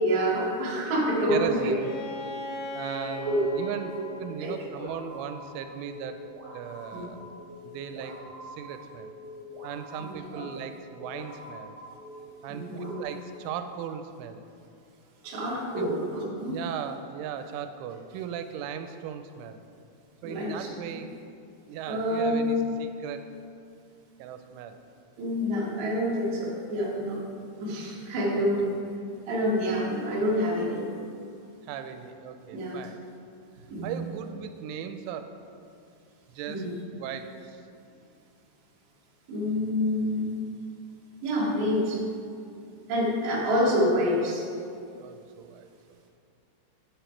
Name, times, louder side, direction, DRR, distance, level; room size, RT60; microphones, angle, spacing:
voice 1, 0.0-1.6 3.2-3.4 3.9-4.0 4.4-4.5 6.9-7.0 10.0-10.4 12.5-13.0 15.2-16.6 20.2-20.7 21.9-22.7 25.2-27.2 27.6-28.8 29.3-30.9 32.5-32.7 33.7-33.9 36.5-36.7 39.3-40.4 41.2-42.0 42.9-44.4, equal, 55° right, -5 dB, 2.3 m, -27 dB
voice 2, 1.3-1.9 2.7-6.3 6.5-7.3 7.6-8.2 8.5-9.1 9.6-11.8 12.4-14.4 15.8-15.9 16.5-19.6 20.2-21.1 21.7-23.3 24.2-24.8 28.3-28.6 31.7-33.0 33.8-35.4 36.3-37.6 45.0-45.7, right 8 dB, 90° right, 8 dB, 3.0 m, -37 dB
Bowed string instrument, 1.8-5.5, left 3 dB, 75° left, 3.6 m, -39 dB
sound 1, 2.8-13.0, left 1 dB, 35° right, 2.1 m, -46 dB
9.5 x 7.1 x 4.4 m, 2.5 s
omnidirectional pair, 5.4 m